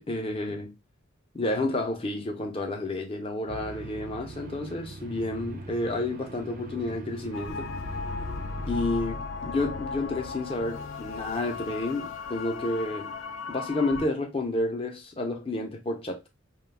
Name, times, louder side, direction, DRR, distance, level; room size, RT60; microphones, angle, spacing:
voice 1, 0.1-0.8 1.3-7.7 8.7-13.1 13.5-16.2, left 2 dB, 30° left, 0.5 m, -30 dB
sound 1, 3.5-8.8, right 2 dB, 45° right, 0.4 m, -41 dB
sound 2, 7.3-14.1, left 4 dB, 80° left, 0.4 m, -36 dB
2.3 x 2.2 x 3.3 m
head